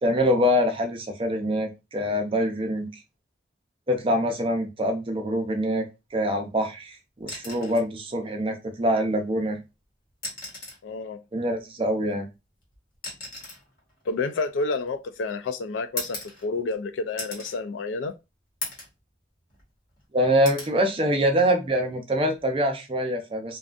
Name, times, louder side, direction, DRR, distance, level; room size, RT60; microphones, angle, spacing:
voice 1, 0.0-2.9 3.9-5.8 6.1-9.6 11.3-12.3 20.1-23.6, equal, 30° right, 0.5 m, -24 dB
sound 1, 7.2-7.9 9.3-9.5 10.1-10.9 12.1-15.1 16.0-16.8 17.2-17.6 18.0-18.1 18.6-19.0 19.4-20.0 20.4-20.8 22.2-22.5, left 2 dB, 50° left, 1.1 m, -38 dB
voice 2, 10.8-11.2 14.1-18.1, left 3 dB, 85° left, 0.4 m, -29 dB
2.6 x 2.3 x 2.4 m
head